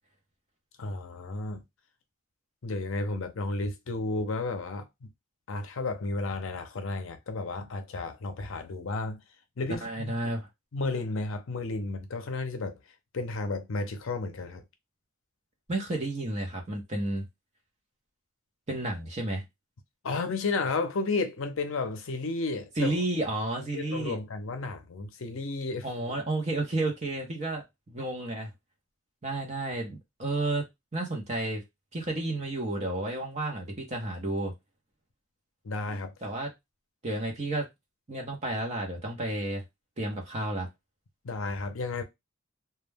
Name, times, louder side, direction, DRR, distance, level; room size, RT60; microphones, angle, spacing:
voice 1, 0.8-1.6 2.6-5.1 5.5-9.2 9.6-10.1 10.7-12.8 13.1-14.6 20.0-23.0 23.7-25.9 35.6-36.1 41.2-42.0, left 3 dB, 65° left, 0.5 m, -32 dB
voice 2, 9.8-10.5 15.7-17.3 18.7-19.4 22.8-24.2 25.8-28.5 29.2-31.6 31.9-34.5 36.2-36.5 37.0-37.7 38.1-39.6 40.0-40.7, right 2 dB, 30° right, 0.7 m, -31 dB
2.3 x 2.1 x 3.3 m
head